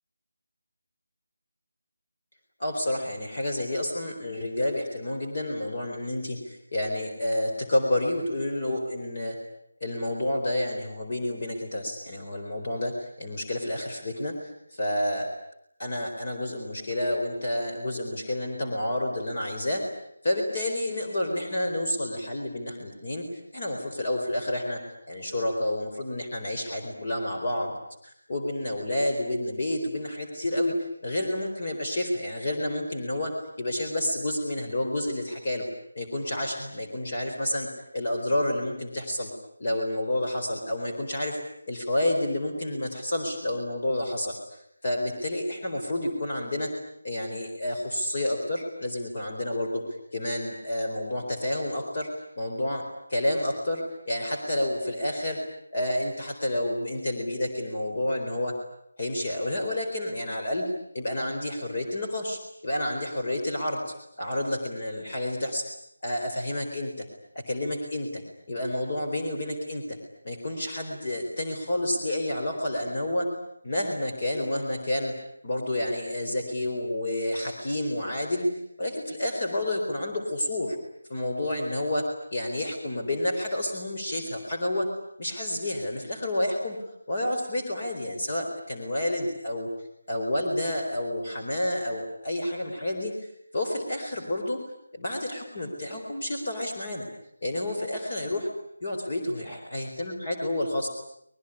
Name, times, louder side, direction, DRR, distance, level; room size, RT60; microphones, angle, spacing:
voice 1, 2.6-9.4 9.8-15.3 15.8-19.8 20.2-23.3 23.5-24.8 25.1-27.8 28.0-35.7 35.9-39.3 39.6-41.4 41.7-46.7 47.0-49.8 50.1-52.1 52.4-55.4 55.7-58.5 59.0-60.6 60.9-65.7 66.0-67.1 67.3-68.2 68.5-70.0 70.2-73.3 73.6-75.1 75.4-80.8 81.1-84.9 85.2-86.8 87.1-89.7 90.1-94.6 94.9-97.0 97.4-98.5 98.8-100.9, left 1 dB, 35° left, 2 dB, 4.3 m, -29 dB
25.5 x 20.5 x 10.0 m, 0.74 s
figure-of-eight pair, 175°, 0 cm